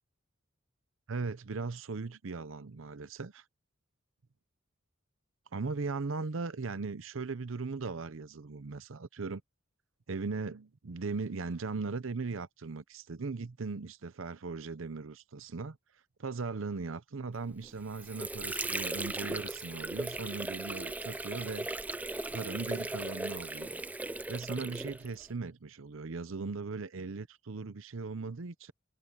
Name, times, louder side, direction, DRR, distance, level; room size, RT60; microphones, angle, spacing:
voice 1, 1.1-3.4 5.5-9.4 10.1-15.8 16.2-21.7 22.3-23.8 24.3-28.7, right 4 dB, 70° right, 0.7 m, -38 dB
Water / Sink (filling or washing), 17.6-25.3, right 2 dB, 10° right, 0.4 m, -37 dB
head